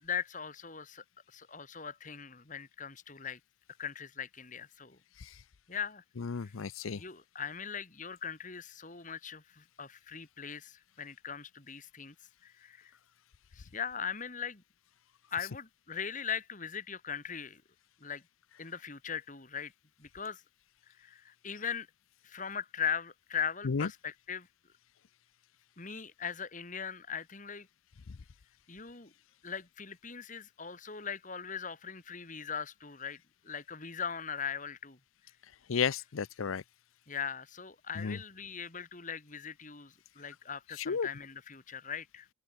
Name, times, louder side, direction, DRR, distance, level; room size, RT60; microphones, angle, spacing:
voice 1, 0.0-3.4 3.8-5.0 5.7-6.0 6.4-6.5 6.9-12.1 12.4-12.9 13.5-14.6 15.3-17.6 18.0-18.2 18.6-19.7 20.0-20.4 21.0-21.9 22.2-24.5 25.8-27.7 28.7-29.1 29.4-35.0 37.1-42.3, left 7 dB, 40° left, 2.2 m, -40 dB
voice 2, 6.3-7.0 23.7-23.9 35.7-36.6 38.0-38.2 40.9-41.1, left 6 dB, 85° left, 0.6 m, -32 dB
open air
head